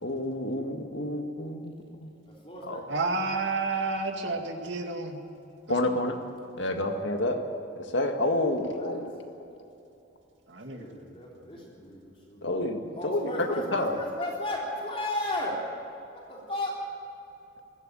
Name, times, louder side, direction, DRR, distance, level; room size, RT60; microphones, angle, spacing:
voice 1, 0.0-1.7 2.0-2.1 2.6-2.8 5.7-6.2 6.6-7.4 7.8-9.1 12.4-14.0, left 1 dB, 70° left, 5 dB, 1.9 m, -29 dB
voice 2, 2.3-2.8 3.9-4.0 8.6-9.0 10.7-12.0 12.3-12.5 12.9-15.6 16.1-16.8, left 1 dB, 30° left, -3 dB, 3.8 m, -34 dB
voice 3, 2.9-5.2 5.7-5.8 10.5-10.9, right 3 dB, 70° right, 4 dB, 2.2 m, -30 dB
21.5 x 16.0 x 9.0 m, 2.8 s
head